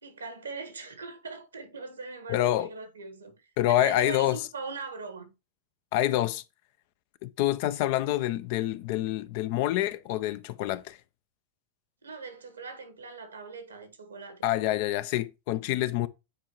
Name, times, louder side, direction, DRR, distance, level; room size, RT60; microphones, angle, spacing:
voice 1, 0.0-5.3 12.0-14.5, right 4 dB, 80° right, 1.3 m, -40 dB
voice 2, 2.3-2.7 3.6-4.4 5.9-6.4 7.2-11.0 14.4-16.1, left 14 dB, 55° left, 0.5 m, -27 dB
8.7 x 4.5 x 2.9 m
figure-of-eight pair, 90°, 0 cm